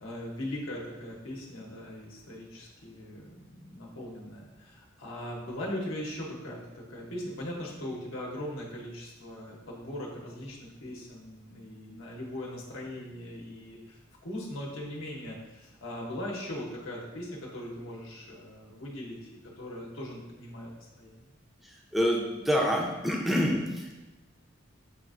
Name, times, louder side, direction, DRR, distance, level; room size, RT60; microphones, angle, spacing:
voice 1, 0.0-21.3, left 1 dB, 85° left, -3 dB, 0.8 m, -40 dB
voice 2, 21.9-24.0, equal, ahead, -1 dB, 0.4 m, -27 dB
6.7 x 2.4 x 2.4 m, 1.1 s
head